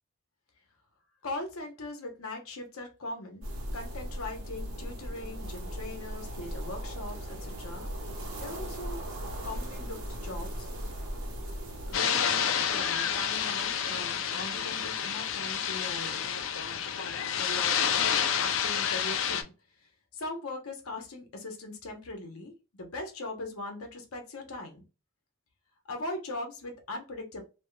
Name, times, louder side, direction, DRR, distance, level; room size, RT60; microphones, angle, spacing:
voice 1, 1.2-3.5 3.7-7.9 8.4-9.1 9.4-10.7 11.9-16.4 17.4-19.5 20.1-24.8 25.9-27.4, left 2 dB, 85° left, 3 dB, 0.9 m, -40 dB
sound 1, 3.4-11.9, equal, 90° right, 1.2 m, -38 dB
sound 2, 11.9-19.4, left 8 dB, 65° left, 0.4 m, -29 dB
2.9 x 2.2 x 3.0 m, 0.31 s
head